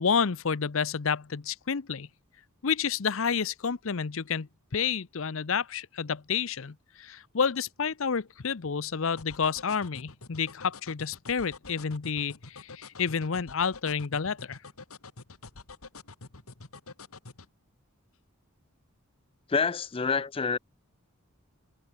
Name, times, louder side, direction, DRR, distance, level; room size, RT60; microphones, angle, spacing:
voice 1, 0.0-2.1 2.6-14.6, left 6 dB, 65° left, 0.7 m, -30 dB
sound 1, 9.2-17.5, left 3 dB, 90° left, 2.4 m, -46 dB
voice 2, 19.5-20.6, left 5 dB, 25° left, 0.4 m, -27 dB
head